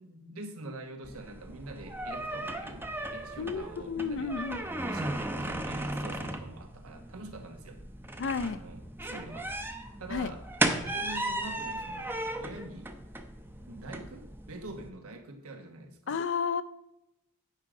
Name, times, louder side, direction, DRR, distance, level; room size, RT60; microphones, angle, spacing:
voice 1, 0.0-2.9 3.1-4.3 4.9-7.8 8.4-10.4 10.7-12.9 13.7-16.2, right 2 dB, 90° right, 5 dB, 1.1 m, -45 dB
sound 1, 1.0-14.9, right 1 dB, 10° right, 0.5 m, -36 dB
voice 2, 3.4-4.9 8.2-8.6 10.1-10.3 16.1-16.6, left 5 dB, 60° left, 14 dB, 0.4 m, -32 dB
8.3 x 5.0 x 4.7 m, 0.86 s
head